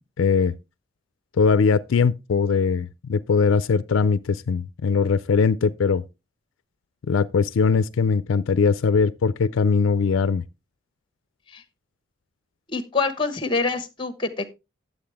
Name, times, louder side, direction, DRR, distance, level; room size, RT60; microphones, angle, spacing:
voice 1, 0.2-0.5 1.4-6.0 7.1-10.4, left 5 dB, 70° left, 0.4 m, -21 dB
voice 2, 12.7-14.5, left 3 dB, 25° left, 1.1 m, -26 dB
10.5 x 7.8 x 3.4 m
head